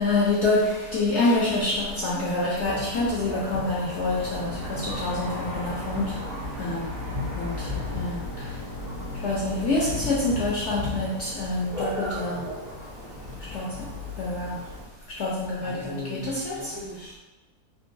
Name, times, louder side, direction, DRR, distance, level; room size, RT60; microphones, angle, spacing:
voice 1, 0.0-6.2 6.6-6.9 7.4-7.7 7.9-8.2 9.2-12.4 13.5-13.7 14.2-14.6 15.2-16.7, left 2 dB, 70° left, -5 dB, 0.6 m, -26 dB
Thunder, 2.6-14.8, left 2 dB, 90° right, 1.7 m, -35 dB
sound 1, 4.0-10.5, right 1 dB, 90° left, 1.2 m, -39 dB
voice 2, 15.6-17.2, left 1 dB, 60° right, -9 dB, 0.3 m, -38 dB
3.7 x 2.5 x 2.6 m, 1.1 s
omnidirectional pair, 1.7 m